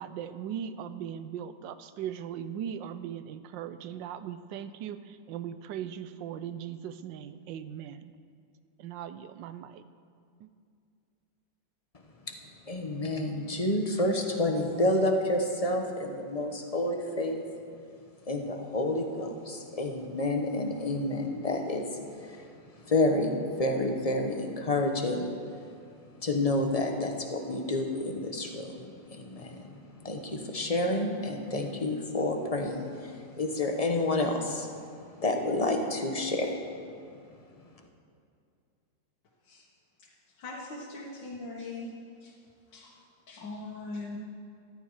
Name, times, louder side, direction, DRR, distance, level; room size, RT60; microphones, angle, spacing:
voice 1, 0.0-8.1 8.8-9.8 10.4-10.5, right 9 dB, 85° right, 12 dB, 1.3 m, -39 dB
voice 2, 11.9-17.4 18.2-36.8 37.1-37.4, left 2 dB, 25° left, 3 dB, 0.9 m, -30 dB
voice 3, 40.4-41.9 42.2-42.3 42.7-42.9 43.3-44.2, left 2 dB, 75° left, -4 dB, 2.1 m, -40 dB
14.0 x 13.5 x 4.8 m, 2.4 s
omnidirectional pair, 1.9 m